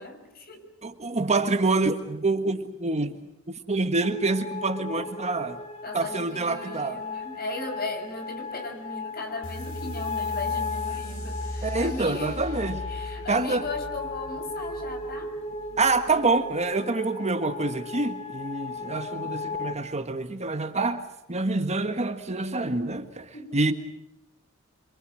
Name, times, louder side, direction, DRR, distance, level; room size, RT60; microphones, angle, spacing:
voice 1, 0.0-0.7 5.8-12.4 12.9-15.3 23.3-23.6, left 3 dB, 45° left, 6.0 m, -37 dB
voice 2, 0.8-3.1 3.5-5.6 5.9-7.0 11.6-12.8 13.3-13.6 15.8-21.0 21.3-23.7, right 3 dB, 30° right, 1.6 m, -26 dB
sound 1, 4.0-19.7, left 3 dB, 30° left, 2.5 m, -36 dB
sound 2, 9.4-16.5, left 1 dB, 70° left, 4.4 m, -38 dB
28.0 x 25.0 x 6.4 m
head